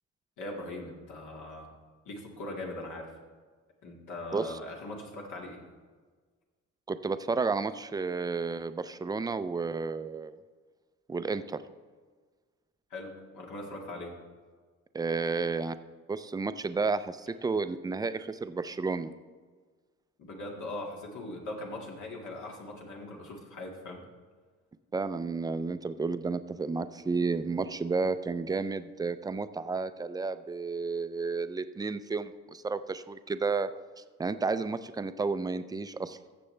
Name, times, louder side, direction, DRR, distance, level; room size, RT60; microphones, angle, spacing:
voice 1, 0.4-1.7 2.1-3.1 3.8-5.7 12.9-14.2 20.2-24.0, left 1 dB, 75° left, 0 dB, 2.0 m, -40 dB
voice 2, 6.9-10.3 11.1-11.6 14.9-15.8 16.1-19.1 24.9-33.7 34.0-36.2, right 4 dB, 15° right, 12 dB, 0.4 m, -32 dB
15.0 x 6.9 x 3.3 m, 1.5 s
cardioid pair, 90°, 30 cm